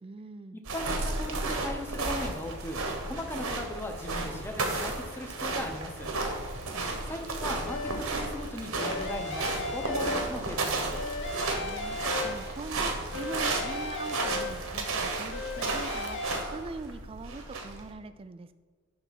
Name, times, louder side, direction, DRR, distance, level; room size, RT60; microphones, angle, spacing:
voice 1, 0.0-0.6 6.7-7.0 11.5-18.5, right 3 dB, 25° right, 12 dB, 0.3 m, -42 dB
voice 2, 0.5-6.1 7.1-11.0, left 1 dB, 10° left, 4 dB, 0.8 m, -38 dB
sound 1, 0.7-17.9, right 2 dB, 65° right, 1.2 m, -33 dB
sound 2, 7.7-8.2 8.8-10.6 10.9-12.7 13.1-14.9 15.3-16.4, left 2 dB, 55° left, 0.9 m, -36 dB
10.0 x 3.5 x 5.7 m, 1.5 s
head